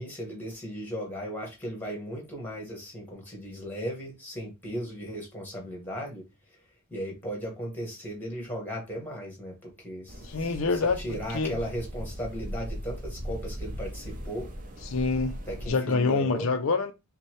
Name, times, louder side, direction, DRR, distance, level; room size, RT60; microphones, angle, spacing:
voice 1, 0.0-6.2 6.9-10.5 11.0-14.5 15.5-16.6, equal, 10° left, 1.6 m, -36 dB
sound 1, 10.1-15.7, equal, 40° right, 0.7 m, -38 dB
voice 2, 10.2-11.0 11.3-11.5 14.8-15.3 15.6-16.9, left 4 dB, 65° left, 0.5 m, -26 dB
5.3 x 2.2 x 3.1 m
head